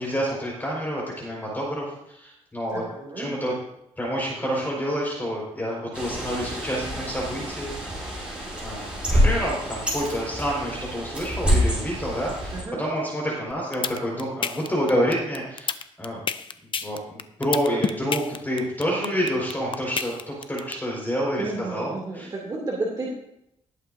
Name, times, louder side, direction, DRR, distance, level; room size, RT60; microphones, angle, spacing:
voice 1, 0.0-2.8 3.2-3.5 4.0-7.8 8.1-12.5 12.8-16.2 16.7-22.3, equal, 15° left, -3 dB, 4.6 m, -28 dB
voice 2, 2.7-3.3 12.5-12.8 21.4-23.1, right 2 dB, 35° right, -4 dB, 2.5 m, -32 dB
Bird, 5.9-12.6, equal, 10° right, 5.2 m, -27 dB
sound 1, 13.5-20.7, left 7 dB, 45° left, 0.6 m, -28 dB
19.0 x 8.3 x 2.7 m, 0.77 s
cardioid pair, 125°, 12 cm